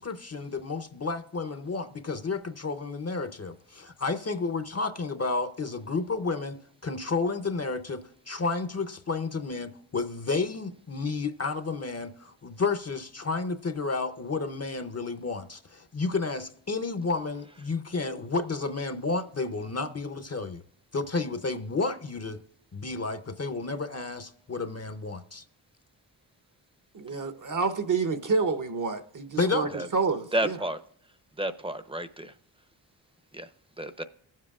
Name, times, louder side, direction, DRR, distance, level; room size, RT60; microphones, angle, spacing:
voice 1, 0.0-6.6 6.8-20.6 20.9-22.4 22.7-25.4 29.4-29.7, left 3 dB, 30° left, 0.7 m, -31 dB
voice 2, 26.9-30.5, right 4 dB, 40° right, 0.9 m, -28 dB
voice 3, 30.3-30.8 31.4-32.4 33.3-33.5 33.8-34.0, right 1 dB, 10° right, 0.7 m, -32 dB
16.5 x 7.5 x 2.4 m
cardioid pair, 50°, 48 cm